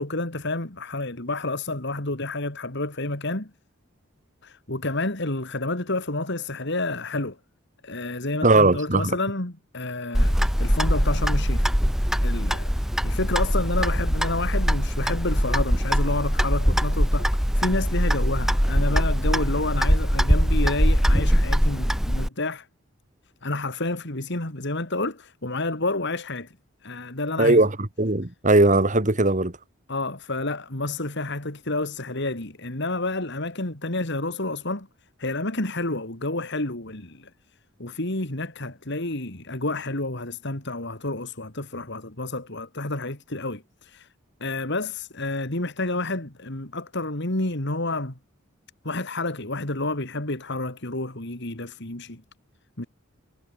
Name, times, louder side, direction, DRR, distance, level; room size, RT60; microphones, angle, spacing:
voice 1, 0.0-3.5 4.4-7.4 7.8-11.7 12.2-12.7 13.0-17.3 17.5-22.7 23.4-26.5 26.8-27.6 29.9-34.9 35.2-37.3 37.8-44.1 44.4-48.2 48.8-52.2 52.8-52.9, left 2 dB, 60° left, 3.4 m, -29 dB
voice 2, 8.4-9.2 27.4-29.6, right 2 dB, 40° right, 2.3 m, -19 dB
Clock, 10.1-22.3, equal, ahead, 2.0 m, -22 dB
head